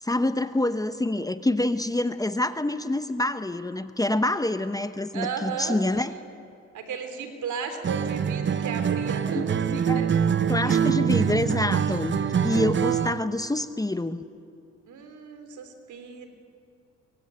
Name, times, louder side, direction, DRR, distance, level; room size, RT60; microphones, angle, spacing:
voice 1, 0.0-6.1 9.3-9.4 9.7-10.0 10.5-14.2, left 1 dB, 10° left, 11 dB, 1.0 m, -26 dB
voice 2, 5.1-6.3 6.7-10.1 10.6-10.8 14.9-16.3, right 6 dB, 75° right, 7 dB, 3.4 m, -35 dB
Acoustic guitar, 7.8-13.2, right 8 dB, 40° right, 0.9 m, -24 dB
23.5 x 23.0 x 9.0 m, 2.4 s
cardioid pair, 90°, 30 cm